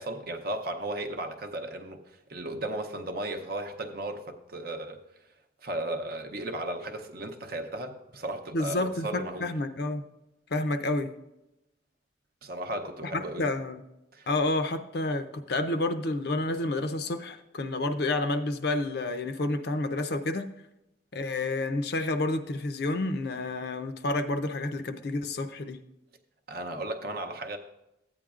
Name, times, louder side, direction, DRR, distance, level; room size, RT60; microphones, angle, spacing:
voice 1, 0.0-2.0 2.3-5.0 5.6-9.5 12.4-13.5 14.1-14.3 26.5-27.6, right 1 dB, 50° right, 0.7 m, -35 dB
voice 2, 8.5-10.0 10.5-11.1 13.1-13.8 14.3-20.5 21.1-25.8, left 2 dB, 55° left, 0.6 m, -29 dB
14.5 x 8.9 x 2.4 m
head